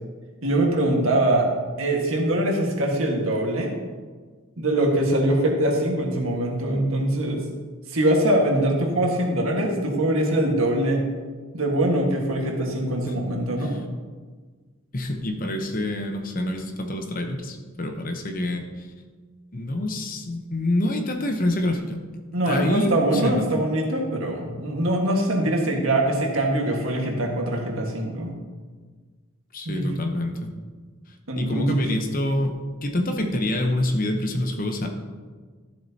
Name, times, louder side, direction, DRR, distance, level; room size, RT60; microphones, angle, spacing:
voice 1, 0.4-1.5 1.8-3.7 4.6-7.4 7.9-11.1 11.5-13.8 22.3-28.3 29.6-29.9 31.3-31.9, right 1 dB, 80° right, 1 dB, 1.6 m, -23 dB
voice 2, 14.9-18.9 19.5-22.0 22.5-23.5 29.5-30.5 31.3-34.9, left 1 dB, 40° left, 4 dB, 0.9 m, -26 dB
13.0 x 7.5 x 2.8 m, 1.5 s
head